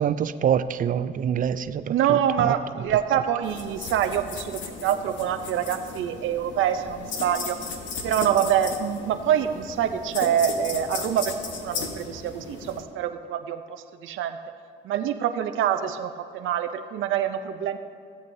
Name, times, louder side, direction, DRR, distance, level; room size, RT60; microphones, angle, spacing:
voice 1, 0.0-2.5, right 8 dB, 45° right, 0.4 m, -25 dB
voice 2, 1.8-7.6 8.0-11.3 11.6-14.4 14.8-17.8, right 9 dB, 80° right, 0.6 m, -25 dB
sound 1, 3.4-12.8, left 4 dB, 70° left, 1.2 m, -36 dB
16.5 x 8.2 x 2.7 m
cardioid pair, 90°, 20 cm